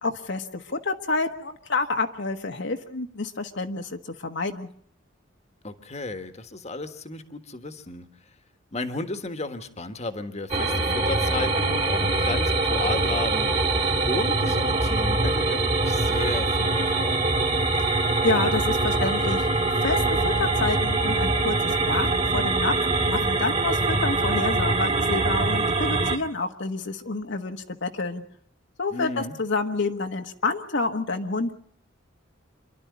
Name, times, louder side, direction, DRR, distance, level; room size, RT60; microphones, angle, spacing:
voice 1, 0.0-4.7 18.2-19.4 19.8-22.7 23.1-28.2 28.8-31.5, left 3 dB, 60° left, 5 dB, 1.4 m, -28 dB
voice 2, 5.6-8.1 8.7-13.7 14.1-17.2 28.9-29.4, left 2 dB, 35° left, 9 dB, 1.6 m, -33 dB
sound 1, 10.5-26.2, right 2 dB, 35° right, 2.3 m, -23 dB
27.5 x 12.0 x 9.6 m, 0.66 s
head